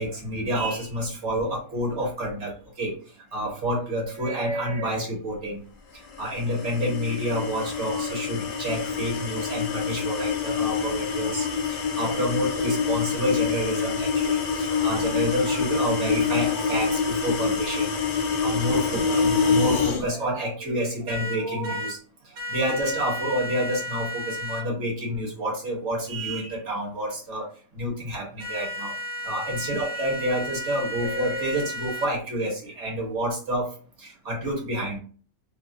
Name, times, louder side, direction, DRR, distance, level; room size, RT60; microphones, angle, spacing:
voice 1, 0.0-2.9 3.3-5.6 6.2-11.5 11.9-17.9 18.4-22.0 22.5-27.5 27.8-28.9 29.2-33.7 34.0-35.0, equal, 65° right, -3 dB, 1.5 m, -28 dB
sound 1, 6.1-20.0, left 5 dB, 70° left, 0.4 m, -26 dB
sound 2, 21.1-21.9 22.4-24.6 28.4-32.1, left 1 dB, 85° right, 1.2 m, -33 dB
3.0 x 2.4 x 2.7 m, 0.41 s
omnidirectional pair, 1.3 m